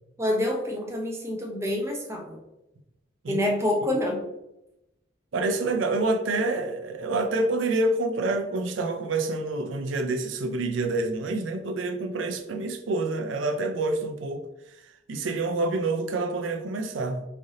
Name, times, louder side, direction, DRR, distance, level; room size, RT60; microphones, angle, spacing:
voice 1, 0.2-2.4 3.3-4.3, left 1 dB, 15° right, 0 dB, 0.6 m, -27 dB
voice 2, 5.3-14.4 15.1-17.3, right 2 dB, 85° right, 6 dB, 0.5 m, -27 dB
3.3 x 2.6 x 3.7 m, 0.89 s
head